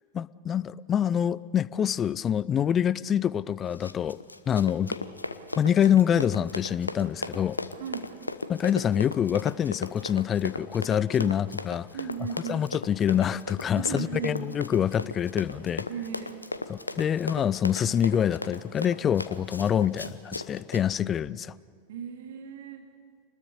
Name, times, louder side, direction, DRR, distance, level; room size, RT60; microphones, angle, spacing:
voice 1, 0.1-4.2 4.5-5.0 5.6-7.6 8.5-11.9 12.5-15.9 16.7-21.5, left 9 dB, 25° left, 20 dB, 0.5 m, -26 dB
Run, 3.7-20.9, left 2 dB, 80° left, 1.0 m, -37 dB
voice 2, 7.8-8.1 11.2-11.3 11.9-12.7 13.7-14.5 15.9-16.4 21.9-22.9, right 7 dB, 55° right, 4 dB, 2.6 m, -36 dB
27.0 x 20.5 x 6.9 m, 2.4 s
figure-of-eight pair, 90°, 0 cm